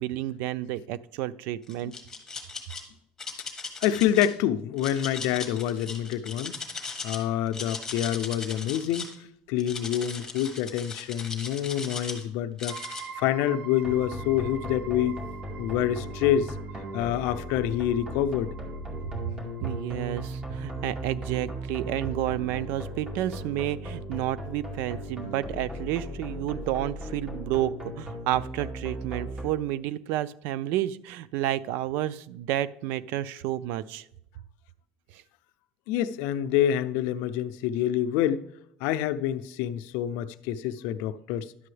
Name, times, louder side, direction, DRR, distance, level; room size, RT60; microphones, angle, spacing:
voice 1, 0.0-1.9 19.6-34.1 35.1-35.2, right 13 dB, 70° right, 0.4 m, -30 dB
sound 1, 1.7-2.8 3.2-4.3 4.8-7.2 7.5-9.1 9.6-12.2 12.6-13.0, left 4 dB, 10° left, 1.5 m, -38 dB
voice 2, 3.8-6.6 7.0-9.1 9.5-12.8 13.2-15.1 15.6-16.5 16.9-18.5 35.9-38.4 38.8-41.5, left 11 dB, 75° left, 0.5 m, -27 dB
sound 2, 12.7-24.1, right 6 dB, 40° right, 0.9 m, -47 dB
sound 3, 13.8-29.4, equal, 20° right, 2.1 m, -37 dB
11.0 x 7.6 x 3.3 m
cardioid pair, 130°, 4 cm